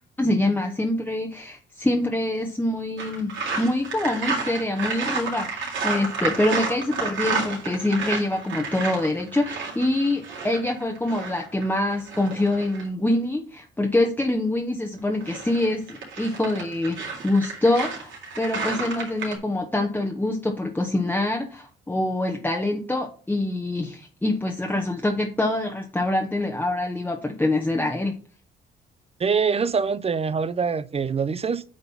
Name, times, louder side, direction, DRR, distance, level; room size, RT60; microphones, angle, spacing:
voice 1, 0.2-3.3 3.6-28.1, left 1 dB, 10° left, 1.1 m, -25 dB
Walking On Frozen Snow LR-RL, 3.0-12.9 15.0-19.4, right 4 dB, 70° right, 3.4 m, -31 dB
voice 2, 29.2-31.6, right 5 dB, 30° right, 0.6 m, -24 dB
8.5 x 3.8 x 5.5 m
cardioid pair, 90°, 20 cm